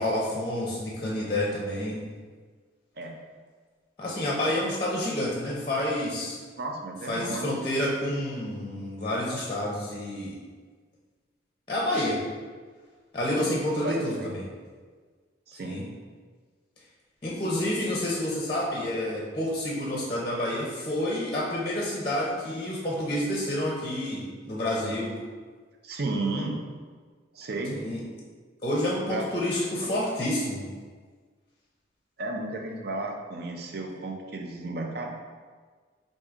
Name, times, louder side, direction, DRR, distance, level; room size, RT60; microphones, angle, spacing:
voice 1, 0.0-2.0 4.0-6.4 7.1-10.4 11.7-12.2 13.1-14.4 15.6-15.8 17.2-25.1 27.7-28.0 28.6-30.6, left 1 dB, 25° left, -4 dB, 0.6 m, -29 dB
voice 2, 6.6-7.6 13.8-14.4 15.5-15.8 25.8-26.6 27.3-27.8 29.1-29.3 29.6-29.9 32.2-35.1, right 2 dB, 55° right, 2 dB, 0.5 m, -33 dB
4.8 x 2.7 x 3.6 m, 1.5 s
head